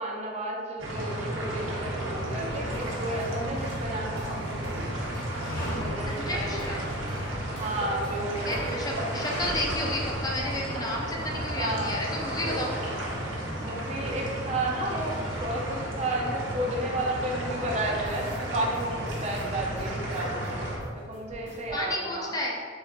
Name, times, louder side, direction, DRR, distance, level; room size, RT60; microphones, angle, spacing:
voice 1, 0.0-4.8 5.8-6.6 7.5-8.8 10.7-10.9 11.4-11.9 13.5-15.1 15.4-20.5 20.9-22.3, right 1 dB, 35° right, 0 dB, 0.5 m, -32 dB
sound 1, 0.8-20.8, right 1 dB, 90° right, 0.8 m, -33 dB
sound 2, 2.3-7.8 8.0-8.2 8.9-15.7, equal, 50° left, 1.0 m, -42 dB
sound 3, 2.4-9.3 9.6-9.7 10.0-10.7 10.9-11.3 11.5-13.2 13.5-17.4 17.8-18.4 18.7-21.8, equal, 70° left, 1.4 m, -47 dB
voice 2, 6.1-6.9 8.4-12.7 21.7-22.5, left 1 dB, 20° left, -1 dB, 0.4 m, -32 dB
3.8 x 2.5 x 4.3 m, 2.1 s
head